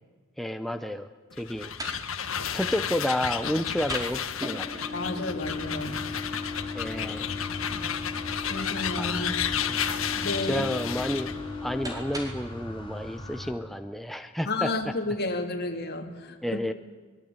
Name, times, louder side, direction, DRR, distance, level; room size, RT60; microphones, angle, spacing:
voice 1, 0.4-1.1 1.4-1.7 2.5-4.9 6.7-7.3 9.0-9.4 10.5-11.3 11.6-14.9 16.4-16.7, equal, ahead, 8 dB, 0.7 m, -31 dB
sound 1, 1.3-11.4, left 8 dB, 70° left, 1.6 m, -32 dB
sound 2, 1.4-12.6, left 3 dB, 20° right, 5.0 m, -38 dB
voice 2, 4.9-6.0 7.5-7.9 8.4-9.7 10.1-10.7 14.4-16.6, left 2 dB, 50° left, 3 dB, 3.4 m, -32 dB
sound 3, 5.4-13.5, left 1 dB, 25° left, 3.6 m, -41 dB
24.0 x 21.5 x 9.6 m, 1.4 s
head